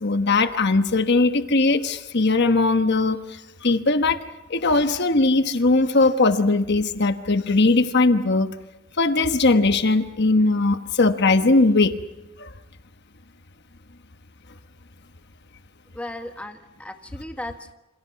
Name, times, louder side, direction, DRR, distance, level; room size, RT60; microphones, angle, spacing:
voice 1, 0.0-4.2 4.5-8.5 9.0-12.0 12.4-12.5, left 3 dB, 50° left, 9 dB, 1.2 m, -19 dB
voice 2, 15.9-17.7, left 1 dB, 5° left, 6 dB, 1.6 m, -36 dB
28.5 x 28.0 x 5.8 m, 0.99 s
head